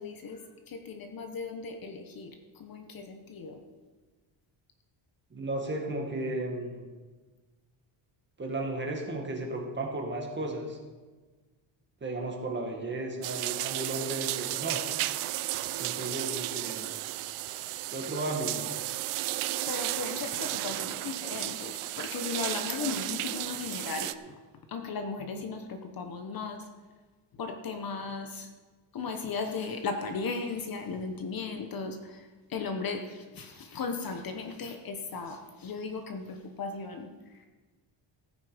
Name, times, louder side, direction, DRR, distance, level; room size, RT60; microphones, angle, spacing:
voice 1, 0.0-3.6 15.7-16.1 16.8-16.9 17.3-17.8 19.3-24.4 24.7-26.7 27.3-28.5 28.9-37.5, left 4 dB, 45° left, 6 dB, 1.1 m, -37 dB
voice 2, 5.3-6.8 8.4-10.8 12.0-14.8 15.8-16.9 17.9-18.7, right 2 dB, 20° right, 1 dB, 1.9 m, -34 dB
sound 1, 13.2-24.1, right 16 dB, 80° right, 0.6 m, -34 dB
15.5 x 9.5 x 5.0 m, 1.3 s
cardioid pair, 170°, 50 cm